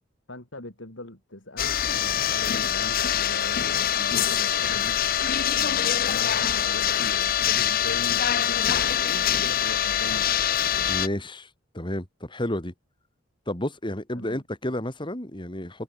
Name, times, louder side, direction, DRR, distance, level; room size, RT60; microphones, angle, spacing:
voice 1, 0.3-10.3 14.1-14.4, left 1 dB, 75° left, 4.4 m, -41 dB
sound 1, 1.6-11.1, left 9 dB, 50° left, 0.8 m, -24 dB
voice 2, 10.9-11.5 11.7-12.7 13.5-15.8, left 1 dB, 25° left, 3.6 m, -31 dB
head